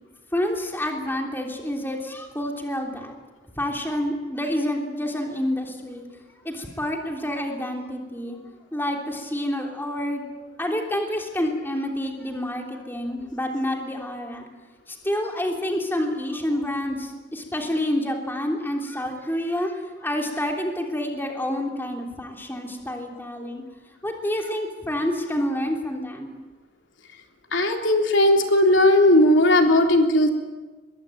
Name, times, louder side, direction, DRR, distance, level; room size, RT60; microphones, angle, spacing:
voice 1, 0.3-3.1 3.6-6.0 6.4-8.4 8.7-10.3 10.6-14.5 14.9-23.6 24.0-26.3, left 1 dB, 10° left, 2 dB, 3.3 m, -28 dB
voice 2, 27.5-30.3, left 1 dB, 70° left, 3 dB, 3.4 m, -17 dB
24.0 x 22.0 x 9.2 m, 1.3 s
head